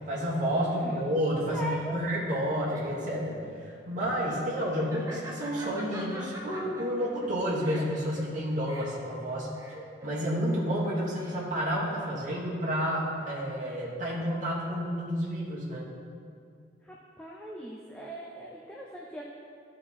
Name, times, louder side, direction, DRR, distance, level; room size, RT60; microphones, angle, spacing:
voice 1, 0.1-9.5 10.0-15.8, equal, 40° right, -7 dB, 1.4 m, -30 dB
voice 2, 0.6-1.1 1.5-1.9 16.8-19.2, equal, 5° left, -4 dB, 0.5 m, -40 dB
Laughter, 2.3-11.7, equal, 15° right, 0.9 m, -45 dB
13.0 x 4.4 x 4.2 m, 2.3 s
head